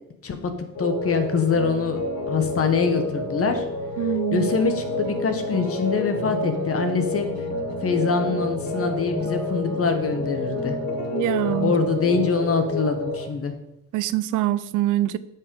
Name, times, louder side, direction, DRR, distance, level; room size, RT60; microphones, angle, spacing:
sound 1, 0.7-13.3, left 2 dB, 85° left, 1.5 m, -29 dB
voice 1, 0.8-2.0 2.3-3.6 4.3-7.3 7.8-10.8 11.6-13.5, left 5 dB, 50° left, 7 dB, 1.5 m, -24 dB
voice 2, 4.0-4.5 11.1-11.7 13.9-15.2, right 14 dB, 90° right, 16 dB, 0.6 m, -24 dB
sound 2, 4.3-11.7, right 7 dB, 55° right, 1.3 m, -40 dB
9.4 x 5.8 x 5.4 m, 0.89 s
cardioid pair, 90°, 30 cm